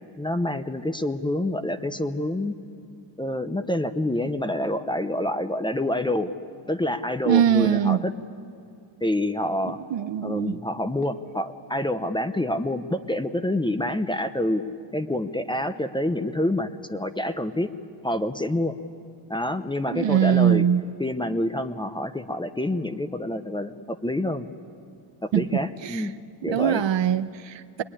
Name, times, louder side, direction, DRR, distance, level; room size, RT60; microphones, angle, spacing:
voice 1, 0.2-2.6 3.2-6.3 6.7-8.2 9.0-9.8 10.2-14.6 14.9-17.7 18.0-18.8 19.3-20.6 21.0-24.5 25.2-26.1 26.4-26.8, left 1 dB, 10° left, 0.6 m, -27 dB
voice 2, 7.3-8.0 9.9-10.6 19.9-20.8 25.3-25.4 25.9-26.0 26.5-27.8, right 9 dB, 70° right, 0.8 m, -22 dB
24.0 x 21.5 x 9.9 m
wide cardioid pair, 175°, 46 cm